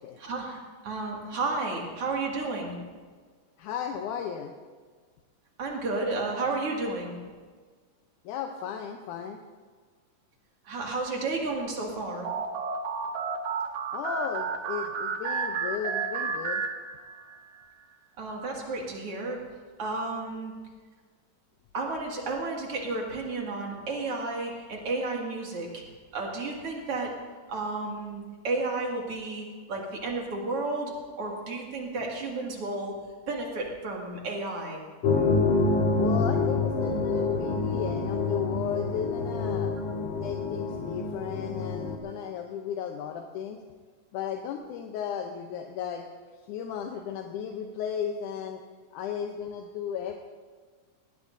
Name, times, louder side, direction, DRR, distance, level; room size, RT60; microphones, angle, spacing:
voice 1, 0.2-2.8 5.6-7.2 10.6-12.3 18.2-19.4 19.8-20.5 21.7-25.8 26.1-27.1 27.5-32.9 33.3-34.8, right 3 dB, 50° right, -1 dB, 3.0 m, -32 dB
voice 2, 3.6-4.5 8.3-9.4 13.9-16.6 35.9-39.7 40.1-43.6 44.1-46.1 46.5-48.6 48.9-50.2, left 8 dB, 80° left, 3 dB, 2.3 m, -35 dB
sound 1, 12.2-17.4, right 5 dB, 70° right, 2.2 m, -31 dB
sound 2, 35.0-42.0, left 3 dB, 50° left, 2.2 m, -27 dB
20.0 x 17.5 x 2.7 m, 1.5 s
omnidirectional pair, 3.6 m